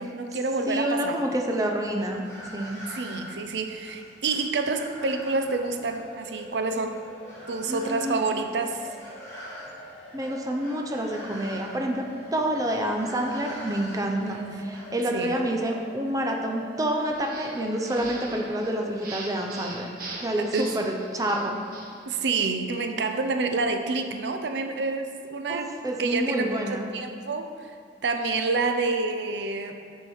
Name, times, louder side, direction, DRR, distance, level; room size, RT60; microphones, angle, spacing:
voice 1, 0.0-1.2 2.9-7.0 7.5-8.8 14.2-14.6 15.1-15.4 20.5-20.7 22.1-25.7 26.0-27.7 28.0-29.8, right 3 dB, 75° right, 6 dB, 0.5 m, -28 dB
voice 2, 0.7-2.2 2.5-2.8 7.7-8.2 10.1-12.0 12.3-19.9 20.2-21.6 25.5-26.9, right 1 dB, 20° right, 2 dB, 0.5 m, -28 dB
sound 1, 1.6-14.9, equal, 15° left, 1.9 m, -45 dB
sound 2, 6.0-19.7, equal, 35° left, 1.1 m, -46 dB
sound 3, 17.1-22.0, right 2 dB, 50° right, 1.0 m, -41 dB
6.4 x 4.5 x 6.3 m, 2.2 s
head